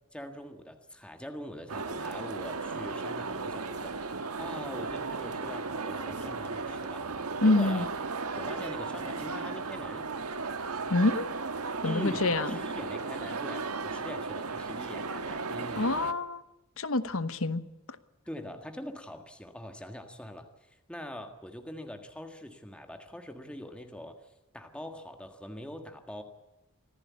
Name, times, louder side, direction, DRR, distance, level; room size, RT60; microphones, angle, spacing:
voice 1, 0.1-7.2 7.4-7.9 8.4-10.0 11.8-16.0 18.3-26.2, equal, 5° left, 5 dB, 1.7 m, -43 dB
sound 1, 1.7-16.1, right 4 dB, 85° right, 1.5 m, -35 dB
voice 2, 7.4-7.8 10.9-11.3 11.8-12.5 15.8-16.4 16.8-17.6, left 2 dB, 65° left, 13 dB, 1.1 m, -26 dB
25.5 x 15.5 x 8.4 m, 1.0 s
head